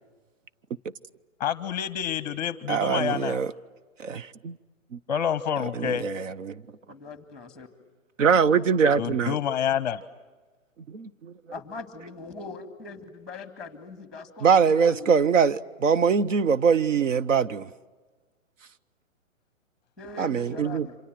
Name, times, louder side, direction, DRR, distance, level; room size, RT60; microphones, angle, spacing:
voice 1, 1.4-3.4 5.1-6.0 9.0-10.0, left 8 dB, 30° left, 0.8 m, -28 dB
voice 2, 2.7-3.5 4.0-4.6 4.9-5.0 5.7-6.6 8.2-9.4 10.9-11.3 14.4-17.7 20.2-20.9, right 6 dB, 70° right, 0.9 m, -23 dB
voice 3, 6.9-7.7 11.5-15.2 20.0-21.0, left 3 dB, ahead, 2.1 m, -41 dB
27.5 x 26.5 x 7.6 m
hypercardioid pair, 150°, 40 cm